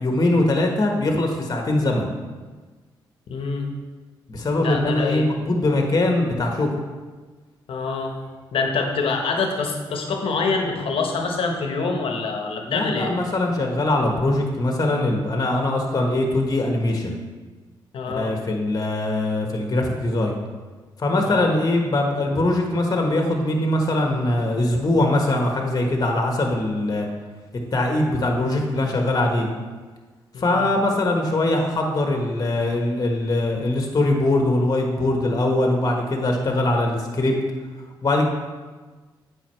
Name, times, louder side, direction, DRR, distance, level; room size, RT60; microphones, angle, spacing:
voice 1, 0.0-2.1 4.3-6.7 12.7-17.2 18.1-20.4 21.0-27.1 27.7-29.5 30.4-37.3 38.0-38.2, left 2 dB, 40° left, 2 dB, 1.3 m, -22 dB
voice 2, 3.3-3.7 4.6-5.2 7.7-8.2 8.5-13.1 17.9-18.3 21.2-21.6 30.3-30.7, left 4 dB, 65° left, 3 dB, 1.1 m, -25 dB
8.5 x 5.2 x 3.2 m, 1.3 s
supercardioid pair, 50°, 10 cm